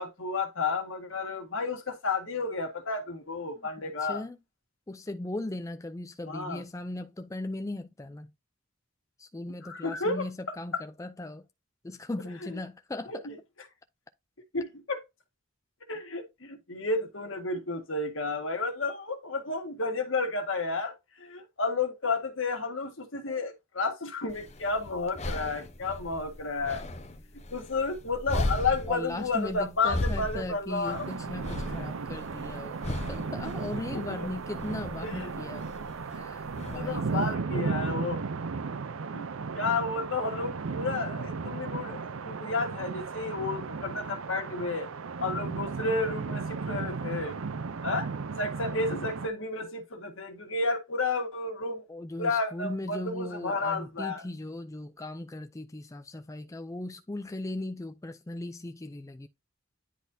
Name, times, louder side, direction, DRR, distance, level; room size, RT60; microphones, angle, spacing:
voice 1, 0.0-4.3 6.3-6.6 9.6-10.8 12.5-12.6 13.1-13.3 14.5-15.0 15.9-26.8 27.5-31.1 33.9-34.3 35.0-35.3 36.8-38.2 39.1-39.3 39.5-44.9 45.2-47.4 47.8-48.1 48.4-51.8 52.2-54.3, left 3 dB, 70° left, 1.8 m, -32 dB
voice 2, 3.8-4.4 4.9-8.3 9.2-11.4 11.8-13.3 28.9-35.7 36.1-37.4 51.9-59.3, left 2 dB, 15° left, 0.4 m, -38 dB
sound 1, 24.3-37.3, left 1 dB, 35° left, 0.8 m, -37 dB
sound 2, 30.8-49.3, right 4 dB, 85° right, 0.6 m, -35 dB
10.0 x 4.1 x 2.7 m
head